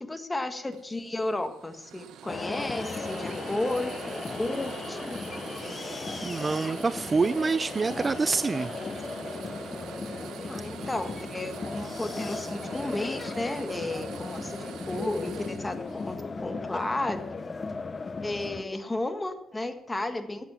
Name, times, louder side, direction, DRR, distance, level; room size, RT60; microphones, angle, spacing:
voice 1, 0.0-4.0 4.4-5.2 10.5-14.6 14.9-16.2 16.4-17.4 18.2-20.5, left 2 dB, 15° left, 7 dB, 1.5 m, -33 dB
sound 1, 0.7-16.2, right 9 dB, 85° right, 1.1 m, -44 dB
sound 2, 2.3-18.6, left 4 dB, 30° left, 0.8 m, -37 dB
voice 2, 6.2-8.7, right 4 dB, 30° right, 15 dB, 0.4 m, -26 dB
12.5 x 8.6 x 7.4 m, 0.84 s
cardioid pair, 90°, 0 cm